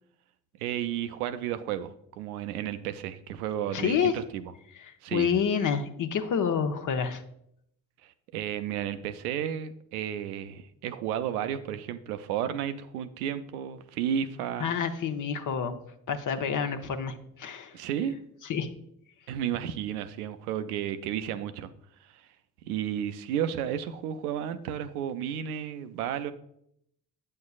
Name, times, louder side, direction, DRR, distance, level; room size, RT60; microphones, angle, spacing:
voice 1, 0.6-4.4 5.0-5.3 8.0-14.7 17.7-18.2 19.3-21.7 22.0-22.2 22.6-26.3, right 9 dB, 80° right, 11 dB, 0.5 m, -32 dB
voice 2, 3.7-4.1 4.8-7.2 14.6-15.8 16.1-17.8 18.4-18.7, left 7 dB, 45° left, 9 dB, 0.8 m, -28 dB
8.4 x 6.5 x 2.4 m, 0.73 s
hypercardioid pair, 50°, 44 cm